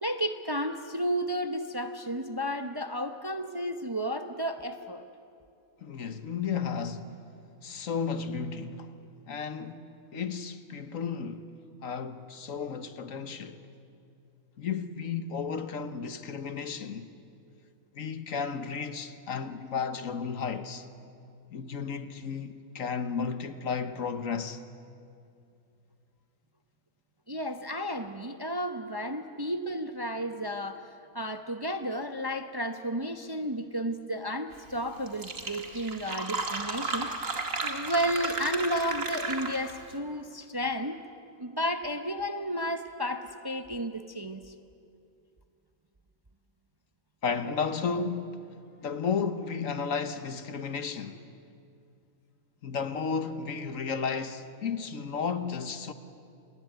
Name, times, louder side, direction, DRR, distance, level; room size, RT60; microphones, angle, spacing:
voice 1, 0.0-5.0 27.3-30.8 31.1-37.1 37.6-41.0 41.4-44.5, equal, 20° right, 0.8 m, -32 dB
voice 2, 5.8-7.2 7.6-8.9 9.3-11.5 11.8-13.6 14.6-17.1 17.9-20.9 21.5-24.6 47.2-48.4 48.8-51.2 52.6-55.9, left 5 dB, 65° left, 1.5 m, -33 dB
Fill (with liquid), 34.8-34.9 35.1-39.8, right 3 dB, 60° right, 2.4 m, -33 dB
27.5 x 20.5 x 9.2 m
omnidirectional pair, 1.5 m